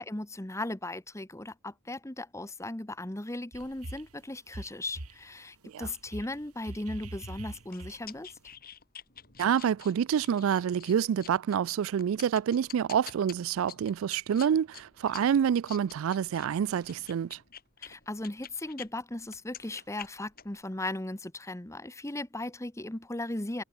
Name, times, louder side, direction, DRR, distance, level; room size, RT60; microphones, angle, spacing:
voice 1, 0.0-8.4 17.8-23.6, left 1 dB, 15° left, 1.1 m, -37 dB
sound 1, 3.5-4.2 4.5-5.2 5.8-8.3, right 1 dB, 85° right, 2.4 m, -43 dB
sound 2, 7.0-18.9 19.2-20.6, left 9 dB, 40° left, 4.8 m, -49 dB
voice 2, 9.4-17.4, right 8 dB, 65° right, 0.3 m, -27 dB
sound 3, 16.6-17.8 19.5-20.3, right 5 dB, 45° right, 7.8 m, -63 dB
head